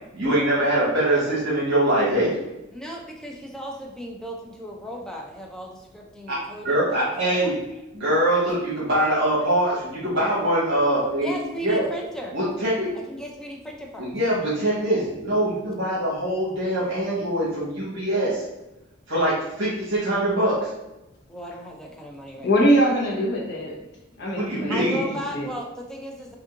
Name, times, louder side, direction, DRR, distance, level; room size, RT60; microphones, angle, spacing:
voice 1, 0.1-2.3 6.3-6.4 6.6-7.5 7.9-11.3 11.6-11.8 12.3-12.9 14.0-18.4 19.1-20.7 24.3-25.0, right 1 dB, 60° right, -9 dB, 1.4 m, -23 dB
voice 2, 2.7-7.5 11.2-12.4 13.1-14.1 21.3-22.7 24.7-26.3, equal, 5° left, -1 dB, 0.4 m, -36 dB
voice 3, 22.4-23.7 24.2-25.1 25.3-25.5, equal, 55° left, -2 dB, 1.1 m, -22 dB
5.2 x 2.7 x 2.6 m, 0.95 s
head